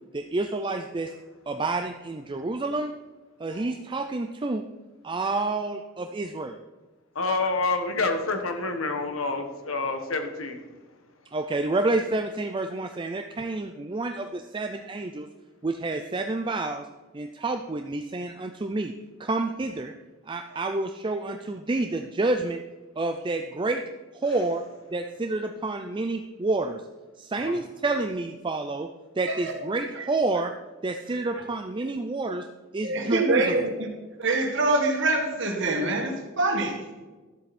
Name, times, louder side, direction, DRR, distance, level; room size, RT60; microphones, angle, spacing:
voice 1, 0.1-1.1 1.5-2.9 3.4-4.6 5.0-6.6 11.3-15.3 15.6-16.9 17.1-18.9 19.2-19.9 20.3-22.6 23.0-23.8 24.1-24.6 24.9-26.8 27.2-28.9 29.2-30.5 30.8-32.5 32.7-33.4, right 2 dB, 25° right, 5 dB, 0.5 m, -29 dB
voice 2, 7.1-10.6 27.3-27.6, left 3 dB, 80° left, 5 dB, 1.4 m, -28 dB
voice 3, 29.2-29.7 29.9-30.1 31.0-31.5 31.8-31.9 32.8-33.9 34.2-37.1, right 2 dB, 60° right, 2 dB, 2.0 m, -26 dB
13.0 x 7.8 x 4.3 m, 1.2 s
head